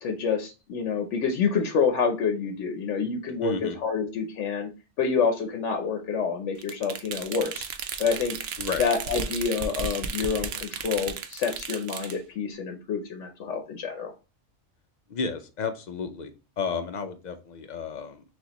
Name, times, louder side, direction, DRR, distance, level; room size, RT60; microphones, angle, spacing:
voice 1, 0.0-4.7 5.0-7.7 8.0-8.4 8.8-14.1, left 5 dB, 80° left, 4 dB, 1.0 m, -27 dB
voice 2, 3.4-3.8 8.6-8.8 15.1-16.3 16.6-18.2, left 5 dB, 55° left, 8 dB, 0.5 m, -32 dB
sound 1, 6.6-12.2, right 6 dB, 65° right, 0.8 m, -34 dB
6.1 x 2.4 x 2.9 m, 0.31 s
omnidirectional pair, 1.2 m